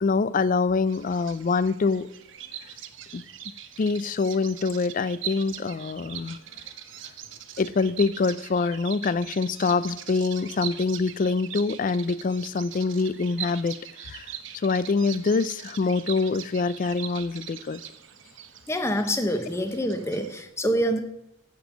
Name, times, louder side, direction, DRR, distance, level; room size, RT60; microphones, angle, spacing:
voice 1, 0.0-2.1 3.1-3.2 3.8-6.4 7.6-13.8 14.0-14.3 14.6-17.8, left 4 dB, 40° left, 0.4 m, -25 dB
Bird vocalization bird call bird song, 0.9-20.4, right 10 dB, 65° right, 0.8 m, -41 dB
voice 2, 18.7-21.0, equal, 15° left, 0.9 m, -26 dB
15.5 x 5.2 x 6.2 m
head